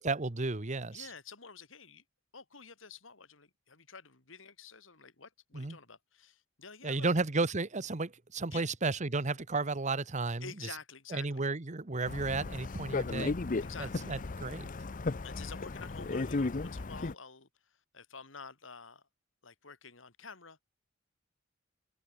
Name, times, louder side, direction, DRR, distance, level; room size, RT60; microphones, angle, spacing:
voice 1, 0.0-1.1 5.5-5.8 6.8-10.5 11.1-13.3 13.8-14.7, right 3 dB, 35° right, 1.1 m, -33 dB
voice 2, 0.9-2.0 2.3-7.1 8.5-8.7 10.4-11.4 13.6-14.1 15.2-17.5 17.9-19.0 19.4-20.6, left 5 dB, 75° left, 3.1 m, -49 dB
sound 1, 12.1-17.1, left 3 dB, 40° left, 0.7 m, -35 dB
head